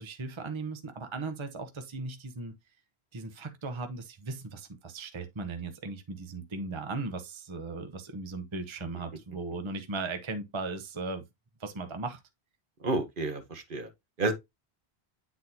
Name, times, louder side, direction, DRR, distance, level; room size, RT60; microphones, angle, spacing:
voice 1, 0.0-2.5 3.1-11.2 11.6-12.2, right 3 dB, 30° right, 0.8 m, -37 dB
voice 2, 12.8-13.9 14.2-14.3, right 2 dB, 55° right, 1.3 m, -30 dB
9.2 x 4.1 x 2.8 m
omnidirectional pair, 1.1 m